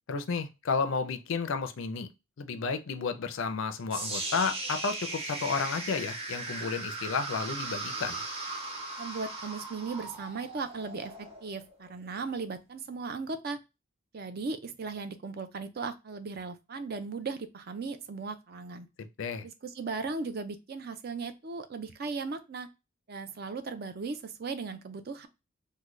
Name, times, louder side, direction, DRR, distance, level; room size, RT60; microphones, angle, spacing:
voice 1, 0.1-2.1 2.4-8.2 19.0-19.5, left 5 dB, 60° left, 0.4 m, -32 dB
sound 1, 3.9-12.0, right 2 dB, 25° right, 0.8 m, -38 dB
voice 2, 9.0-13.6 14.1-18.9 19.4-22.7 23.1-25.3, right 4 dB, 45° right, 0.4 m, -37 dB
3.7 x 2.2 x 3.1 m
head